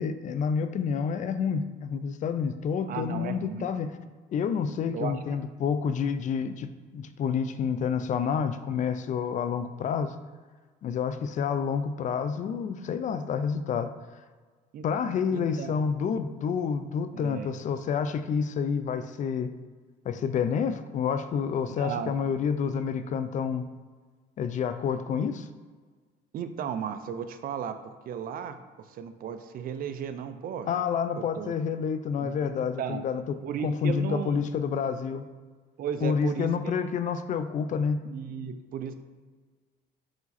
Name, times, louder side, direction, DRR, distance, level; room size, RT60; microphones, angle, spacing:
voice 1, 0.0-4.0 4.3-10.1 10.8-13.9 14.8-19.5 20.0-23.7 24.4-25.5 30.7-35.2 36.0-38.0, left 6 dB, 50° left, 10 dB, 0.4 m, -29 dB
voice 2, 2.9-3.7 4.9-5.2 14.7-14.8 15.3-15.8 17.1-17.5 21.7-22.1 26.3-27.7 28.1-28.6 28.9-30.7 31.2-31.5 32.2-33.0 33.4-34.4 35.8-36.9 37.7-39.0, right 8 dB, 60° right, 9 dB, 0.6 m, -35 dB
5.2 x 4.8 x 4.1 m, 1.4 s
cardioid pair, 110°, 17 cm